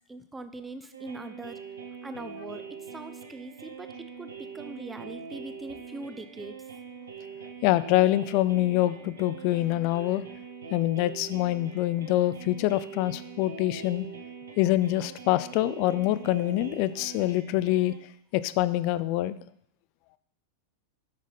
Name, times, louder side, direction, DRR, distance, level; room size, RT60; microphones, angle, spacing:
voice 1, 0.1-1.6 2.0-6.7, right 2 dB, 10° right, 11 dB, 0.5 m, -42 dB
sound 1, 0.9-18.0, right 6 dB, 70° right, 1.0 m, -43 dB
voice 2, 7.6-10.2 10.7-14.1 14.6-17.9 18.3-19.4, left 15 dB, 45° left, 15 dB, 0.3 m, -25 dB
7.4 x 6.2 x 4.1 m, 0.71 s
figure-of-eight pair, 90°, 0 cm